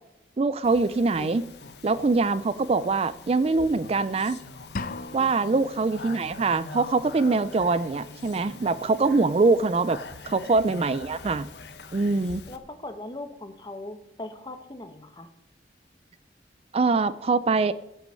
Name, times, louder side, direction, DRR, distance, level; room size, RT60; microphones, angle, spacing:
voice 1, 0.4-1.5 1.8-4.4 5.1-10.0 10.3-11.5 11.9-12.4 16.7-17.7, right 3 dB, 35° right, 15 dB, 0.4 m, -23 dB
Speech, 0.6-12.6, left 3 dB, 70° left, 1.2 m, -44 dB
sound 1, 4.8-5.7, left 3 dB, 50° left, 0.6 m, -35 dB
voice 2, 12.5-15.3, left 2 dB, 25° left, 8 dB, 1.2 m, -40 dB
16.5 x 6.2 x 7.7 m, 0.93 s
head